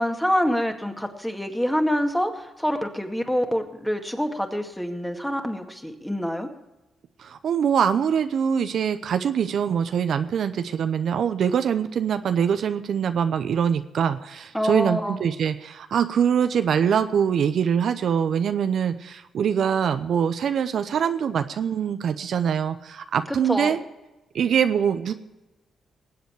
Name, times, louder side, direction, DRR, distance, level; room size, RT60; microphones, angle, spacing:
voice 1, 0.0-6.5 14.5-15.2 23.3-23.8, equal, 5° left, 4 dB, 2.1 m, -26 dB
voice 2, 7.2-23.8 24.3-25.1, right 8 dB, 70° right, 10 dB, 0.7 m, -23 dB
19.5 x 8.1 x 4.7 m, 1.0 s
supercardioid pair, 55°, 0 cm